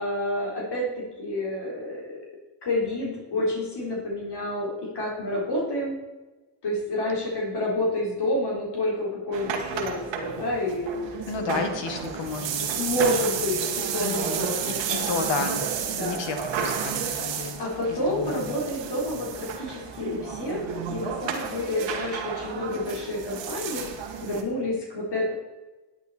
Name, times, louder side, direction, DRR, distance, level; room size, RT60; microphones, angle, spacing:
voice 1, 0.0-2.2 2.6-6.0 6.6-11.0 11.3-11.6 12.7-14.6 14.9-15.1 15.8-16.2 17.6-23.9 24.2-25.3, left 1 dB, 65° left, -3 dB, 4.0 m, -29 dB
sound 1, 9.3-24.4, right 7 dB, 85° right, 1.5 m, -32 dB
voice 2, 11.3-12.7 13.0-13.2 14.0-15.6 16.0-17.6 17.9-18.5, left 4 dB, 85° left, 6 dB, 1.6 m, -32 dB
10.5 x 8.1 x 4.2 m, 1.1 s
cardioid pair, 65°, 43 cm